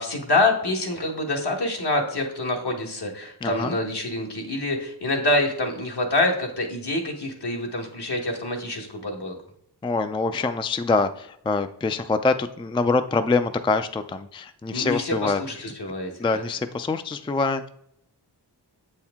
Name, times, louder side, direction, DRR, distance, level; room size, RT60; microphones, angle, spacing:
voice 1, 0.0-9.3 14.7-16.4, left 2 dB, 65° left, 1 dB, 1.4 m, -26 dB
voice 2, 3.4-3.8 9.8-15.4 16.2-17.7, left 3 dB, 15° left, 9 dB, 0.3 m, -25 dB
7.8 x 4.4 x 3.6 m, 0.72 s
wide cardioid pair, 70°, 42 cm